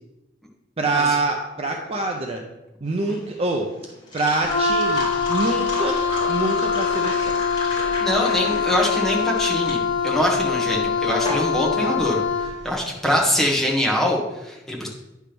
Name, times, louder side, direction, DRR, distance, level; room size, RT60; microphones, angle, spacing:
voice 1, 0.8-2.4 2.8-3.7 4.1-7.3, right 2 dB, 30° right, 2 dB, 0.6 m, -25 dB
sound 1, 2.9-12.7, left 1 dB, 25° left, 2.7 m, -33 dB
Wind instrument woodwind instrument, 4.4-12.6, left 6 dB, 90° left, 1.4 m, -23 dB
voice 2, 8.0-12.2 12.6-14.9, equal, ahead, -2 dB, 1.4 m, -23 dB
9.6 x 3.5 x 6.0 m, 0.97 s
head